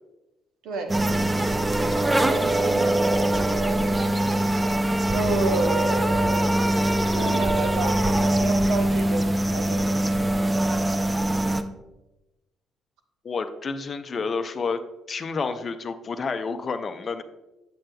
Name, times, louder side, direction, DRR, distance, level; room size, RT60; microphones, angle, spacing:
voice 1, 0.6-0.9 1.9-2.9 5.1-6.5 7.1-9.9, right 3 dB, 70° right, 3 dB, 0.9 m, -30 dB
sound 1, 0.9-11.6, right 1 dB, 20° right, 0.5 m, -22 dB
voice 2, 13.2-14.8 15.1-17.2, left 4 dB, 45° left, 9 dB, 0.5 m, -29 dB
7.7 x 7.4 x 2.3 m, 1.0 s
hypercardioid pair, 50°, 0 cm